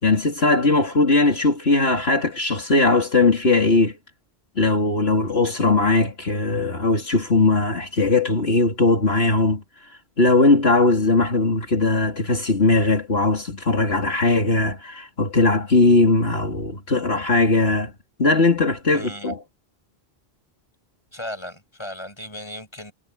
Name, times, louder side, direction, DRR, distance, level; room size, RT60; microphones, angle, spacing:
voice 1, 0.0-3.9 4.6-9.6 10.2-17.9 18.2-19.4, left 3 dB, 75° left, 3.6 m, -19 dB
voice 2, 18.9-19.3 21.1-22.9, left 1 dB, 25° left, 8.1 m, -36 dB
omnidirectional pair, 1.0 m